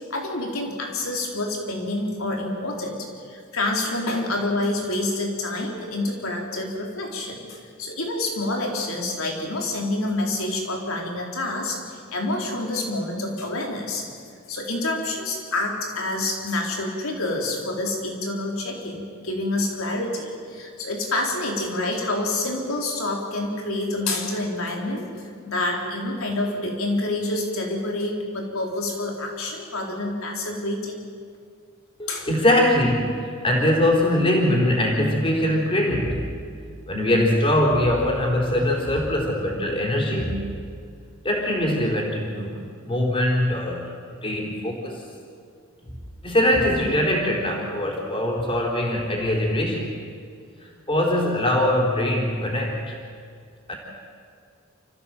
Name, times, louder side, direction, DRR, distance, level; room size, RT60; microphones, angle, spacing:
voice 1, 0.1-14.1 14.5-25.0 25.4-31.0 32.1-32.3, left 2 dB, 90° left, 0 dB, 4.2 m, -27 dB
voice 2, 32.0-36.3 36.9-40.5 41.2-42.6 42.9-43.9 44.2-45.0 45.9-46.0 46.2-49.9 50.9-53.0 53.7-53.8, left 1 dB, 25° left, -1 dB, 4.0 m, -22 dB
29.0 x 15.0 x 7.6 m, 2.2 s
head